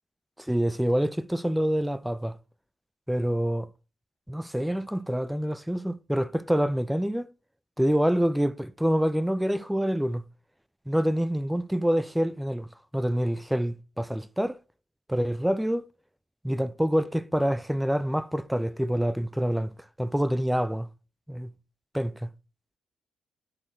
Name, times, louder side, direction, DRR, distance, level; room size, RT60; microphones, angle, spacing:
voice 1, 0.4-2.4 3.1-3.7 4.3-7.3 7.8-10.2 10.9-12.7 12.9-14.6 15.1-15.9 16.4-19.7 20.0-20.9 21.3-21.5 21.9-22.3, equal, 5° right, 0.5 m, -26 dB
11.5 x 4.5 x 4.7 m
figure-of-eight pair, 40°, 0 cm